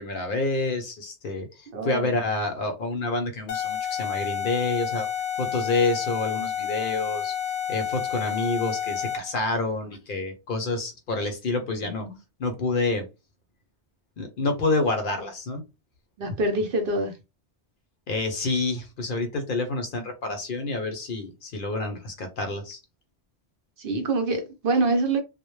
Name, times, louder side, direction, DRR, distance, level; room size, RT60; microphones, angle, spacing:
voice 1, 0.0-5.1 5.4-7.4 7.7-12.1 12.4-13.0 14.2-15.6 18.1-22.8, left 3 dB, 60° left, 0.7 m, -28 dB
voice 2, 1.7-2.2 11.8-12.2 16.2-17.1 23.8-25.2, right 2 dB, 60° right, 0.7 m, -25 dB
sound 1, 3.5-9.4, left 9 dB, 85° left, 0.9 m, -30 dB
2.0 x 2.0 x 3.0 m
omnidirectional pair, 1.1 m